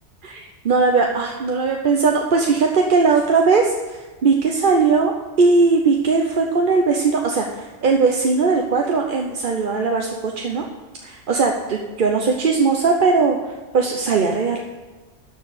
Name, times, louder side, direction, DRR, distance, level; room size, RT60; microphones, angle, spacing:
voice 1, 0.2-10.7 11.0-14.6, right 4 dB, 50° right, 2 dB, 0.9 m, -19 dB
12.5 x 4.7 x 8.5 m, 1.3 s
omnidirectional pair, 1.3 m